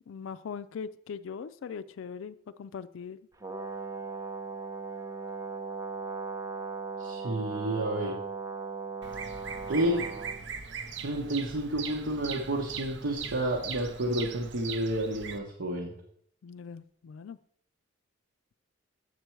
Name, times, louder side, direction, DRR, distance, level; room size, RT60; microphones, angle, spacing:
voice 1, 0.1-3.2 16.4-17.4, left 6 dB, 75° left, 0.4 m, -40 dB
Brass instrument, 3.4-10.4, right 4 dB, 15° right, 0.6 m, -38 dB
voice 2, 7.0-8.2 9.7-10.0 11.0-15.9, right 1 dB, 75° right, 1.1 m, -30 dB
Bird vocalization bird call bird song, 9.0-15.4, right 6 dB, 60° right, 0.6 m, -40 dB
7.9 x 6.7 x 4.6 m
head